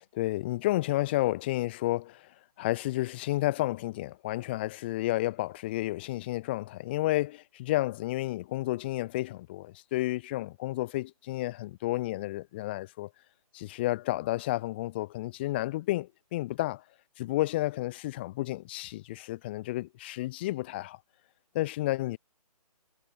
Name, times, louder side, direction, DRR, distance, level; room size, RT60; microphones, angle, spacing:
voice 1, 0.1-13.1 13.5-16.8 17.2-21.0 21.5-22.2, left 17 dB, 15° left, 0.7 m, -31 dB
figure-of-eight pair, 140°, 19 cm